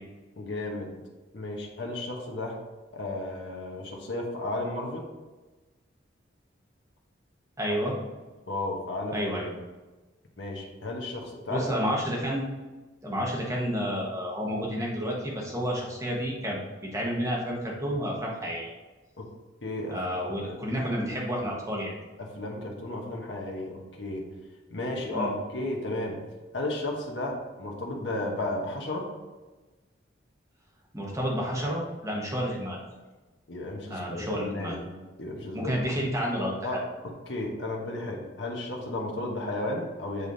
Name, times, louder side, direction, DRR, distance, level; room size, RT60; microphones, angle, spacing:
voice 1, 0.4-0.9 1.3-2.6 2.9-5.1 8.5-9.3 10.4-11.7 19.2-19.3 19.6-20.6 22.2-24.3 24.7-26.2 26.5-29.1 33.5-34.9 35.2-35.7 36.6-40.3, left 1 dB, 70° left, 0 dB, 1.2 m, -33 dB
voice 2, 7.6-8.0 9.1-9.5 11.5-12.5 13.0-16.6 16.9-18.7 19.9-21.9 25.1-25.3 30.9-32.8 33.9-34.7 35.5-36.8, equal, 15° right, -3 dB, 1.4 m, -30 dB
8.2 x 3.5 x 4.0 m, 1.2 s
head